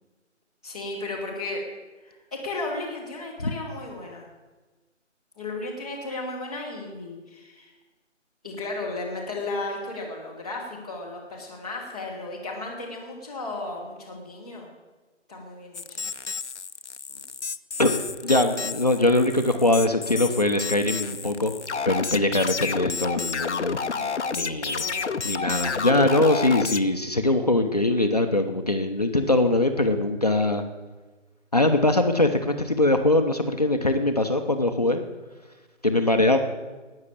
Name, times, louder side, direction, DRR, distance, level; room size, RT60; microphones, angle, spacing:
voice 1, 0.6-1.6 2.0-4.3 5.3-7.7 8.4-14.7 15.3-16.1 17.1-17.2 23.9-25.2, left 2 dB, 5° right, -9 dB, 0.9 m, -35 dB
sound 1, 15.7-26.8, left 5 dB, 65° left, 0.8 m, -30 dB
voice 2, 18.2-21.5 21.8-23.8 24.3-24.9 25.2-30.6 31.5-35.0 35.8-36.4, left 2 dB, 30° left, 5 dB, 0.8 m, -22 dB
18.5 x 6.5 x 8.7 m, 1.3 s
figure-of-eight pair, 160°, 38 cm